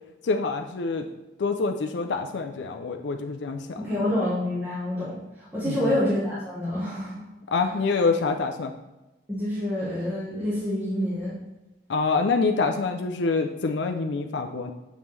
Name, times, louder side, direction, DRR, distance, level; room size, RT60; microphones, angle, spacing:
voice 1, 0.2-1.1 1.4-3.9 5.6-5.9 7.5-8.7 11.9-14.7, left 4 dB, 85° left, 5 dB, 0.5 m, -26 dB
voice 2, 3.8-7.3 9.3-11.4, left 1 dB, 10° right, -11 dB, 1.5 m, -27 dB
7.3 x 5.3 x 3.2 m, 1.0 s
head